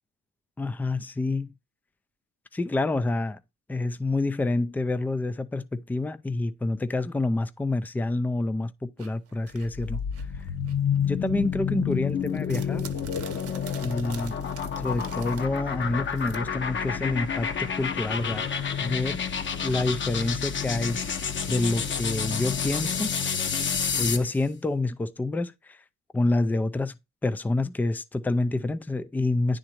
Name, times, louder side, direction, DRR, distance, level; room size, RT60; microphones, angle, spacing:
voice 1, 0.6-1.5 2.5-3.4 3.7-10.0 11.1-12.8 13.8-14.3 14.8-18.5 18.8-19.2 19.6-21.0 21.5-23.1 24.0-25.8 26.1-26.9 27.2-29.6, left 2 dB, 5° left, 0.4 m, -27 dB
sound 1, 9.0-11.1 11.4-16.4, right 6 dB, 50° right, 0.9 m, -45 dB
sound 2, 9.6-24.3, left 7 dB, 40° left, 0.8 m, -29 dB
9.7 x 3.8 x 2.9 m
cardioid pair, 90°, 30 cm